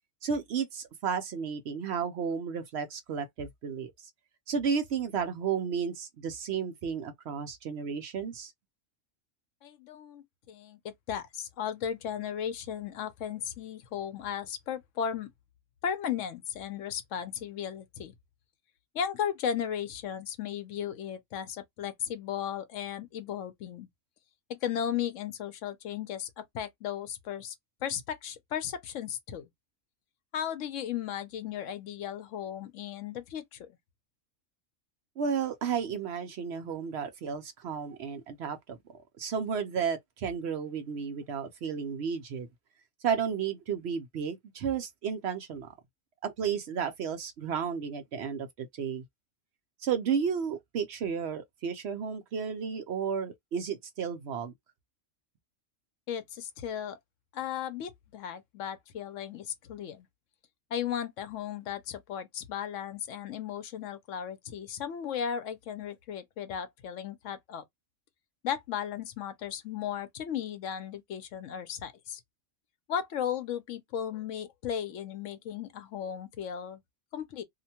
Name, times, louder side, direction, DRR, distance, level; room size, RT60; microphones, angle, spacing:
voice 1, 0.2-3.9 4.5-8.5 35.2-38.8 39.2-42.5 43.0-45.7 46.2-49.0 49.8-54.5, right 6 dB, 65° right, 0.8 m, -33 dB
voice 2, 9.6-15.3 15.8-18.1 18.9-23.9 24.5-27.5 27.8-29.5 30.3-33.8 56.1-57.0 57.3-60.1 60.7-67.6 68.4-72.2 72.9-76.8 77.1-77.4, left 9 dB, 75° left, 0.9 m, -35 dB
2.7 x 2.2 x 2.8 m
omnidirectional pair, 1.3 m